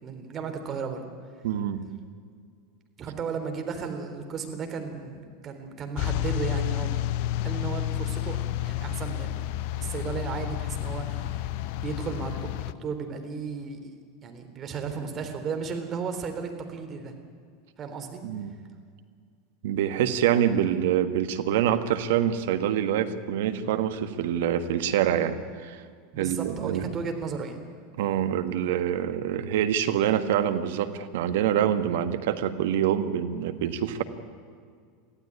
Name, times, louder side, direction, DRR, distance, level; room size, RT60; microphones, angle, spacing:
voice 1, 0.0-1.0 3.0-7.0 7.4-9.4 9.8-11.5 11.8-14.0 14.2-17.1 17.8-18.2 26.1-27.6, right 5 dB, 35° right, 6 dB, 3.6 m, -34 dB
voice 2, 1.4-1.8 18.2-18.5 19.6-25.8 26.2-26.9 28.0-34.0, right 10 dB, 70° right, 9 dB, 1.5 m, -26 dB
sound 1, 6.0-12.7, left 13 dB, 60° left, 0.7 m, -30 dB
23.0 x 15.0 x 9.8 m, 2.1 s
hypercardioid pair, 90°, 0 cm